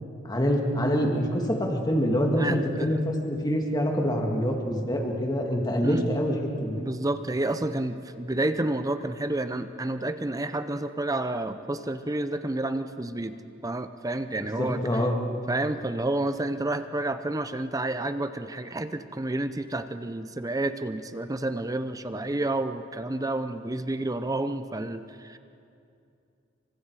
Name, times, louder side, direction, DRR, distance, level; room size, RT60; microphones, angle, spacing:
voice 1, 0.2-6.3 6.6-6.8 14.6-15.1, equal, 20° left, 2 dB, 2.3 m, -25 dB
voice 2, 2.4-3.0 5.8-6.1 6.8-13.4 13.6-15.1 15.5-25.4, right 2 dB, 20° right, 10 dB, 0.7 m, -30 dB
28.0 x 24.5 x 4.9 m, 2.5 s
head